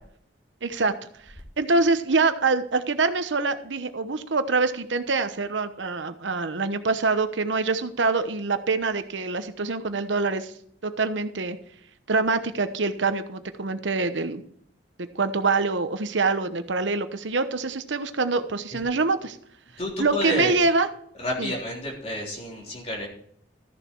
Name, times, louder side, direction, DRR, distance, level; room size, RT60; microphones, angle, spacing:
voice 1, 0.6-0.9 1.6-10.5 10.8-11.6 12.1-14.4 15.0-19.4 20.0-20.9 21.4-21.5, right 3 dB, 85° right, 10 dB, 1.0 m, -25 dB
voice 2, 19.8-20.5 21.2-23.1, equal, 35° left, -2 dB, 3.5 m, -29 dB
13.5 x 7.1 x 4.6 m, 0.64 s
head